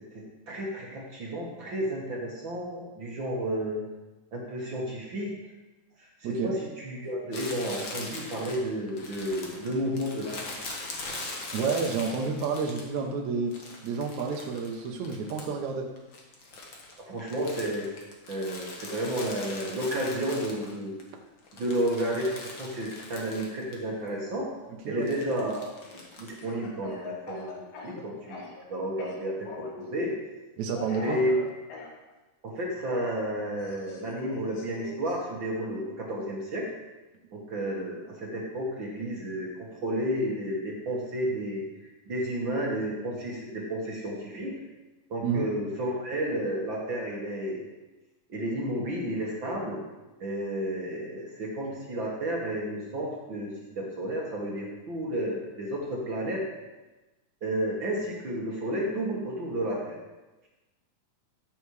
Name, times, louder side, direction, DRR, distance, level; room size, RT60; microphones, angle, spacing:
voice 1, 0.1-3.8 4.3-5.3 6.2-10.6 17.1-17.9 18.3-21.0 21.6-24.5 24.8-28.4 28.7-30.1 31.0-31.4 32.4-36.7 37.3-44.6 45.1-47.6 48.3-49.8 50.2-56.4 57.4-60.0, right 1 dB, 50° right, -3 dB, 1.6 m, -32 dB
voice 2, 6.2-6.6 11.5-13.5 13.8-15.9 24.9-25.1 30.6-31.2 45.2-45.5, right 5 dB, 70° right, 1 dB, 1.9 m, -30 dB
Crumpling crinkling, 7.3-13.1 13.5-15.7 16.0-21.0 21.4-23.8 24.1-24.2 25.0-26.4, left 2 dB, 60° left, 1.2 m, -41 dB
Speech / Cough, 26.4-28.7 29.0-29.8 30.7-31.9 32.9-35.2, left 3 dB, 85° left, 3.4 m, -42 dB
14.5 x 7.1 x 3.3 m, 1.1 s
omnidirectional pair, 4.0 m